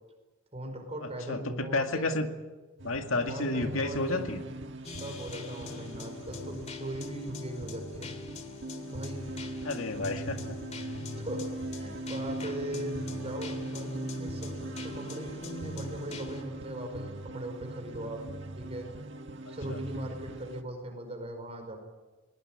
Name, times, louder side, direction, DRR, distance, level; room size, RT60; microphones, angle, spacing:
voice 1, 0.5-2.1 3.3-4.3 5.0-8.1 8.9-9.2 11.2-11.5 11.8-18.2 18.5-18.9 19.5-21.8, right 1 dB, 30° right, 5 dB, 5.1 m, -39 dB
voice 2, 1.3-2.3 2.8-4.4 9.6-10.6 19.7-19.8, left 2 dB, 75° left, 5 dB, 2.1 m, -31 dB
sound 1, 2.8-20.6, right 1 dB, 60° right, 1.5 m, -40 dB
sound 2, 4.8-16.4, left 2 dB, 35° left, 2.1 m, -42 dB
21.0 x 19.5 x 8.8 m, 1.2 s
head